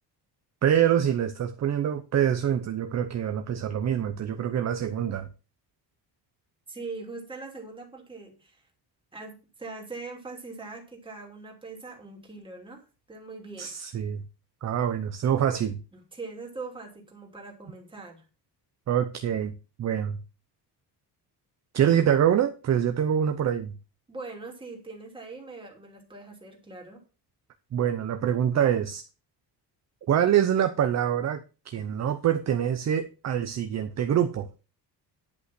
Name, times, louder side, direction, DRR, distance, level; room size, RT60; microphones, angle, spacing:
voice 1, 0.6-5.3 13.6-14.2 14.6-15.8 18.9-20.2 21.7-23.7 27.7-29.0 30.1-34.5, right 9 dB, 40° right, 0.8 m, -25 dB
voice 2, 6.7-8.6 9.1-13.7 15.9-18.2 24.1-27.0, right 3 dB, 10° right, 2.8 m, -41 dB
10.5 x 5.6 x 6.0 m
cardioid pair, 170°, 42 cm